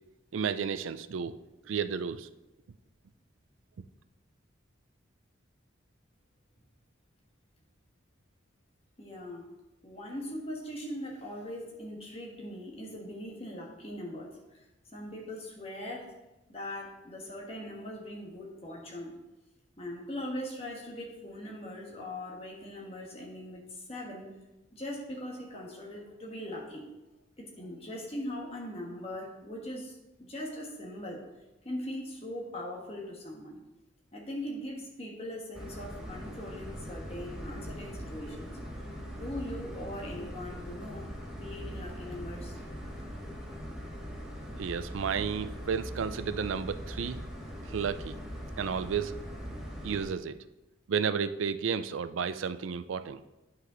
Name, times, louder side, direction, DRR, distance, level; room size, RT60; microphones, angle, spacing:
voice 1, 0.3-1.3 1.7-2.3 3.8-3.9 44.6-47.2 47.7-48.2 48.6-49.2 49.8-50.4 50.9-53.2, right 6 dB, 85° right, 12 dB, 0.4 m, -32 dB
voice 2, 9.0-9.5 9.8-14.6 14.9-16.1 16.5-19.1 19.8-24.3 24.7-26.9 27.4-31.2 31.6-33.6 34.1-38.6 39.1-42.5, left 1 dB, 30° left, -1 dB, 1.4 m, -40 dB
sound 1, 35.5-50.1, equal, 5° right, 1.1 m, -41 dB
9.3 x 5.5 x 3.9 m, 1.0 s
head